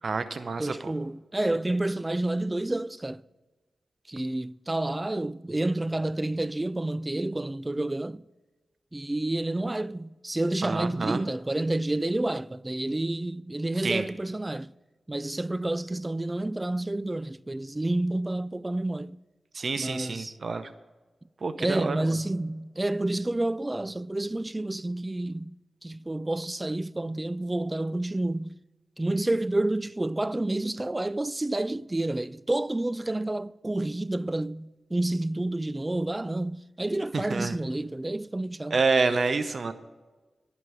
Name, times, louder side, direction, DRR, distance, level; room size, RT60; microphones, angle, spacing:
voice 1, 0.0-0.9 10.6-11.2 13.8-14.0 19.5-20.7 21.4-22.0 37.1-37.6 38.7-39.7, right 4 dB, 60° right, 0.7 m, -28 dB
voice 2, 0.6-3.2 4.1-8.2 8.9-14.7 15.1-19.2 19.8-20.4 21.6-25.6 25.8-28.6 29.0-38.8, right 1 dB, 20° right, 0.3 m, -29 dB
11.0 x 5.2 x 7.6 m
cardioid pair, 65°, 0 cm